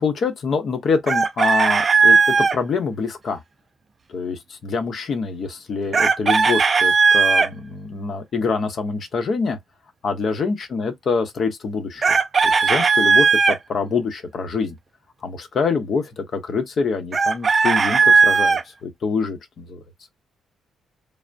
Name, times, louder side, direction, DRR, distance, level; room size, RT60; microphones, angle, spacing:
voice 1, 0.0-3.4 4.1-9.6 10.0-12.2 12.4-14.8 15.2-19.8, left 5 dB, 55° left, 0.7 m, -25 dB
Chicken rooster, 1.1-2.6 5.9-7.5 12.0-13.6 17.1-18.6, right 5 dB, 40° right, 0.3 m, -16 dB
3.3 x 2.0 x 2.5 m
cardioid pair, 90°, 0 cm